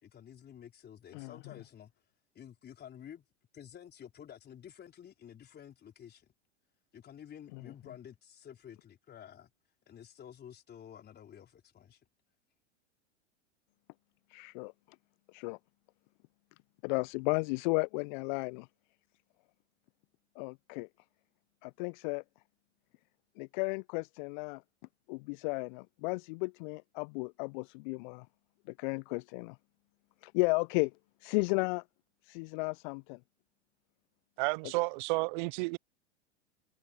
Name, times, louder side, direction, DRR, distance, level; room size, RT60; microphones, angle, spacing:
voice 1, 0.0-1.9 2.3-3.3 3.5-6.3 6.9-9.5 9.9-12.0, left 9 dB, 30° left, 4.1 m, -51 dB
voice 2, 14.3-14.7 15.3-15.6 16.8-18.7 20.4-20.9 21.6-22.2 23.4-24.6 25.1-28.3 28.7-29.6 30.2-30.9 31.2-31.8 32.2-33.2, left 30 dB, 45° left, 0.5 m, -34 dB
voice 3, 34.4-35.8, right 26 dB, 45° right, 0.5 m, -31 dB
figure-of-eight pair, 90°, 35 cm